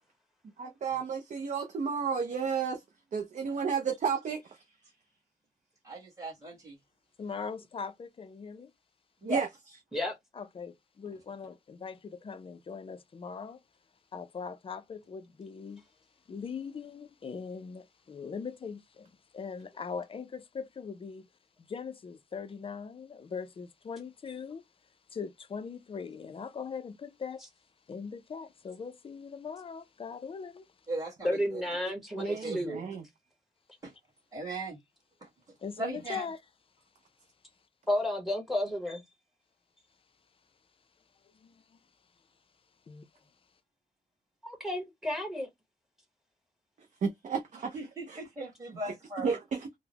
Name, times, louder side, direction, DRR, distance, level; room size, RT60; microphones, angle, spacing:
voice 1, 0.6-2.8 3.1-4.6 9.3-9.5 32.2-33.0 47.0-48.5 49.2-49.7, right 6 dB, 50° right, 0.5 m, -32 dB
voice 2, 5.8-6.7 9.2-9.4 30.9-31.6 32.3-32.8 33.8-33.9 34.3-34.8 35.8-36.3 47.7-49.3, right 2 dB, 20° right, 1.5 m, -37 dB
voice 3, 7.2-8.7 10.3-13.6 14.1-15.8 16.3-21.3 21.7-24.6 25.1-27.4 27.9-30.7 35.6-36.4 41.3-41.8 42.9-43.1, left 6 dB, 35° left, 0.4 m, -41 dB
voice 4, 31.2-32.9 37.9-39.0 44.4-45.5, left 1 dB, ahead, 1.0 m, -31 dB
3.7 x 2.0 x 2.8 m
wide cardioid pair, 150°, 16 cm